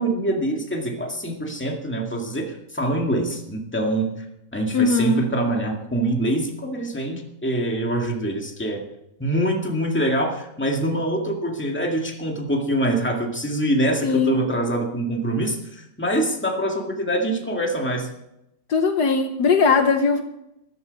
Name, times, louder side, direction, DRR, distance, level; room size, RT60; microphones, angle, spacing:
voice 1, 0.0-4.1 4.5-8.9 9.2-18.1, right 1 dB, 5° left, 1 dB, 1.9 m, -24 dB
voice 2, 4.7-5.2 14.0-14.4 18.7-20.2, left 4 dB, 65° left, 7 dB, 1.5 m, -19 dB
14.0 x 12.0 x 5.3 m, 0.83 s
omnidirectional pair, 2.0 m